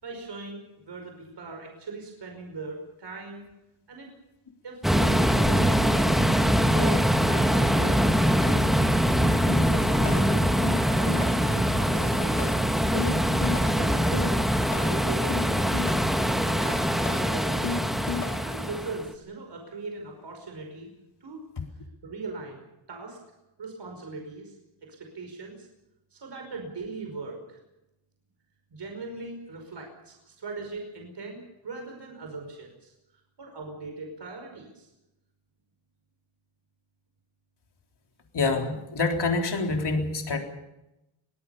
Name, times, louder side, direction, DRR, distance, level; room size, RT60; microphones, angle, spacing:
voice 1, 0.0-3.5 3.9-4.1 4.6-6.1 6.7-8.6 9.7-10.4 10.9-14.4 14.8-15.7 16.4-17.8 18.4-20.9 21.2-21.4 22.0-22.6 22.9-23.2 23.6-24.6 24.8-25.7 26.1-27.6 28.7-32.9 33.4-34.9, right 3 dB, 55° right, 3 dB, 5.4 m, -39 dB
sound 1, 4.8-19.1, equal, ahead, 1.5 m, -23 dB
sound 2, 9.5-9.8 10.1-10.4 10.6-11.5 11.8-15.0 15.3-16.2 16.5-18.7, left 7 dB, 85° left, 1.9 m, -35 dB
voice 2, 38.3-40.4, left 3 dB, 55° left, 3 dB, 3.9 m, -26 dB
23.5 x 18.5 x 7.0 m, 0.90 s
wide cardioid pair, 115°, 48 cm